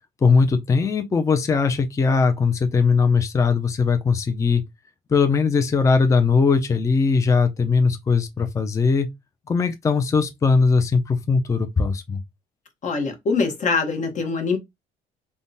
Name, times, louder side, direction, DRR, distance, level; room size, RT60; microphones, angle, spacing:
voice 1, 0.2-4.6 5.1-9.1 9.5-12.2, left 4 dB, 20° left, 0.4 m, -20 dB
voice 2, 12.8-14.6, left 4 dB, 45° left, 1.0 m, -23 dB
3.5 x 2.1 x 2.6 m
cardioid pair, 110°, 17 cm